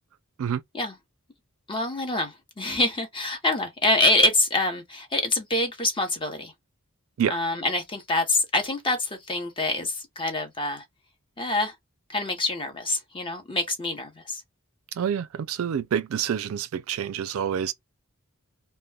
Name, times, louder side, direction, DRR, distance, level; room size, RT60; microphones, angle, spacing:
voice 1, 1.7-6.5 7.3-10.8 11.4-11.7 12.1-14.4, left 2 dB, 25° left, 0.8 m, -26 dB
voice 2, 14.9-17.7, right 8 dB, 65° right, 0.4 m, -27 dB
2.2 x 2.2 x 3.2 m
head